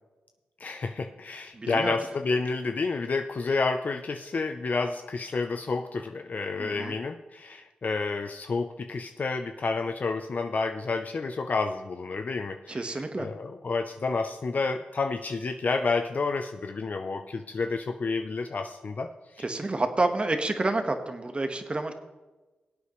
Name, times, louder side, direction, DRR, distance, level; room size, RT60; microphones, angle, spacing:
voice 1, 0.6-12.8 13.2-19.1 19.3-19.4, left 4 dB, 50° left, 6 dB, 0.6 m, -30 dB
voice 2, 1.5-2.0 6.6-6.9 12.7-13.3 19.4-21.9, right 2 dB, 30° right, 7 dB, 1.3 m, -29 dB
19.0 x 8.3 x 3.1 m, 1.2 s
cardioid pair, 55°, 3 cm